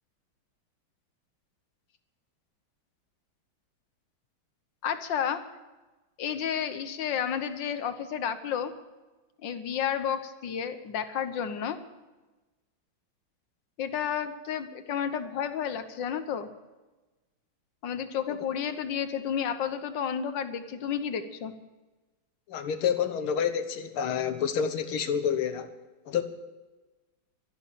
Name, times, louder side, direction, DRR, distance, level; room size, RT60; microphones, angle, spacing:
voice 1, 4.8-5.4 6.2-8.7 9.4-11.8 13.8-16.5 17.8-21.5, left 8 dB, 65° left, 10 dB, 1.7 m, -31 dB
voice 2, 22.5-25.7 26.1-26.2, left 7 dB, 85° left, 9 dB, 2.0 m, -28 dB
13.0 x 11.5 x 8.8 m, 1.2 s
omnidirectional pair, 2.3 m